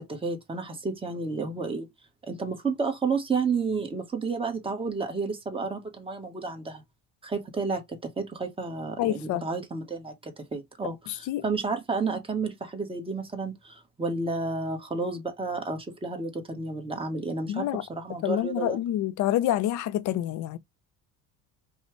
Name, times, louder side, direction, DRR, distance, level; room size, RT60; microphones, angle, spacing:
voice 1, 0.0-1.9 2.2-6.8 7.2-18.8, right 4 dB, 15° right, 1.3 m, -31 dB
voice 2, 9.0-9.4 11.1-11.4 17.5-17.8 18.2-20.6, left 13 dB, 65° left, 0.7 m, -27 dB
5.4 x 2.4 x 3.1 m
cardioid pair, 125°, 32 cm